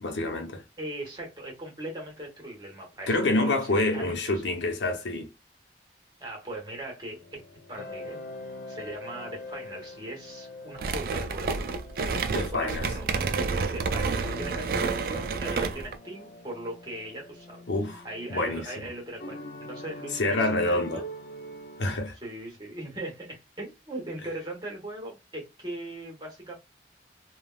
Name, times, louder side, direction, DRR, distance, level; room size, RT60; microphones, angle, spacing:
voice 1, 0.0-0.6 3.1-5.3 12.3-12.9 17.7-18.9 20.1-21.0 21.8-22.2, left 2 dB, 85° left, 0.7 m, -27 dB
voice 2, 0.8-3.7 3.9-4.4 6.2-7.4 7.7-8.2 8.7-11.7 12.5-13.3 13.6-17.6 18.0-21.1 22.2-26.5, right 1 dB, 25° right, 1.3 m, -39 dB
sound 1, 7.1-22.1, left 1 dB, 55° left, 0.4 m, -44 dB
sound 2, 10.8-16.0, right 4 dB, 55° right, 0.4 m, -29 dB
3.3 x 2.3 x 2.3 m
head